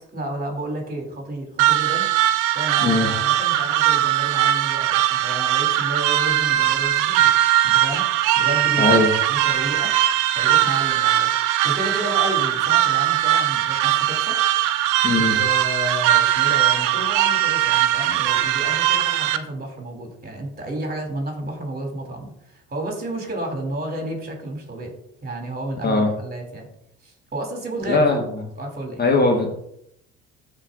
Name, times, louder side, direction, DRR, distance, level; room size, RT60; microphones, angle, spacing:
voice 1, 0.1-2.1 2.5-7.3 7.6-8.1 8.3-9.9 10.3-11.3 11.6-14.4 15.1-24.9 25.2-26.7 27.0-28.2 28.6-29.0, right 1 dB, 30° right, 2 dB, 2.6 m, -31 dB
sound 1, 1.6-19.4, right 13 dB, 75° right, 0.6 m, -20 dB
voice 2, 2.8-3.1 8.8-9.1 15.0-15.4 25.8-26.1 27.9-28.2 29.0-29.5, left 3 dB, 30° left, 2 dB, 1.4 m, -19 dB
13.0 x 4.5 x 2.5 m, 0.75 s
supercardioid pair, 70°, 31 cm